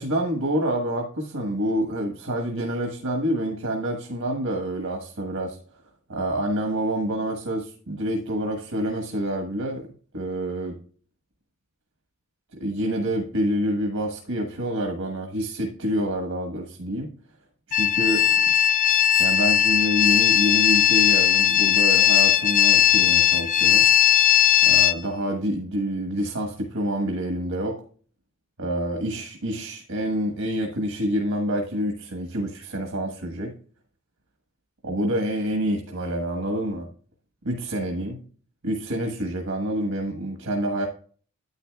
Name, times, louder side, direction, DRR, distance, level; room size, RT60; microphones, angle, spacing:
voice 1, 0.0-5.6 6.1-9.9 10.1-10.8 12.5-17.1 17.7-18.4 19.2-23.9 24.6-27.8 28.6-33.5 34.8-36.9 37.4-38.2 38.6-40.9, equal, 85° right, 2 dB, 1.3 m, -27 dB
sound 1, 17.7-24.9, left 11 dB, 35° left, 0.4 m, -18 dB
9.7 x 8.8 x 2.3 m, 0.43 s
head